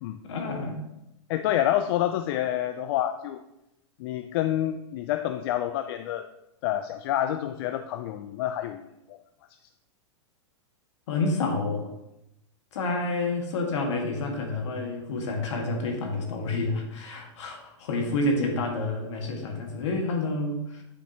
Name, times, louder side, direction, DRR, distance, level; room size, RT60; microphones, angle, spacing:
voice 1, 0.2-0.8 11.1-11.9 12.7-20.8, left 2 dB, 70° left, 2 dB, 1.7 m, -29 dB
voice 2, 1.3-3.4 4.0-6.3 6.6-9.2, left 12 dB, 55° left, 8 dB, 0.4 m, -28 dB
8.4 x 5.1 x 2.9 m, 0.87 s
hypercardioid pair, 125°, 16 cm